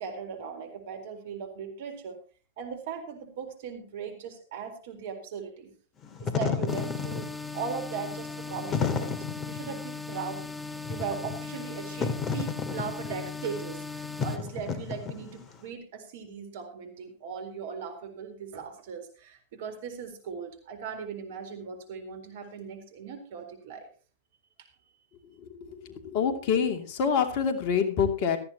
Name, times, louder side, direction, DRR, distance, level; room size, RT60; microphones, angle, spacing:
voice 1, 0.0-2.2 2.6-5.7 6.2-10.5 10.9-23.9 24.6-24.7, right 6 dB, 60° right, 6 dB, 4.1 m, -39 dB
Wind / Fire, 6.0-15.6, left 5 dB, 25° left, 2.0 m, -33 dB
sound 1, 6.7-14.4, left 4 dB, 5° left, 1.1 m, -38 dB
voice 2, 25.4-28.4, left 7 dB, 50° left, 6 dB, 2.6 m, -27 dB
17.5 x 14.0 x 3.0 m, 0.37 s
hypercardioid pair, 105°, 0 cm